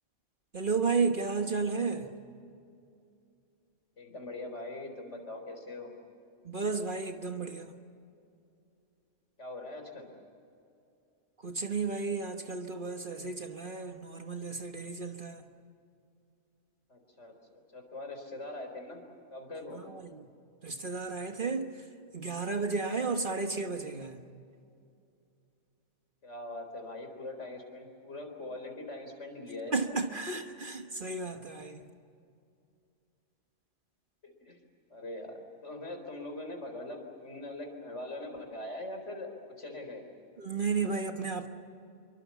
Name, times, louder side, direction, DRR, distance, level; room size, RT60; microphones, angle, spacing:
voice 1, 0.5-2.1 6.4-7.7 11.4-15.4 19.8-20.2 20.6-21.7 22.1-24.2 29.7-31.8 40.4-41.5, right 4 dB, 40° right, 6 dB, 1.5 m, -33 dB
voice 2, 4.0-5.9 9.4-10.1 16.9-19.0 19.3-19.8 26.2-29.7 34.2-34.6 34.9-40.0, left 2 dB, 65° left, 4 dB, 4.4 m, -42 dB
27.0 x 24.0 x 7.3 m, 2.5 s
omnidirectional pair, 1.3 m